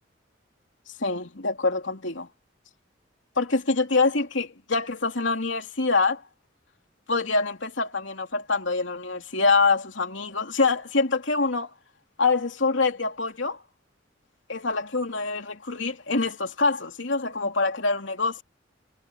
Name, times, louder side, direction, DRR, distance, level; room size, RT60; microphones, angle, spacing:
voice 1, 1.0-2.3 3.4-6.2 7.1-11.7 12.2-13.6 14.5-18.4, left 3 dB, 80° left, 2.9 m, -25 dB
head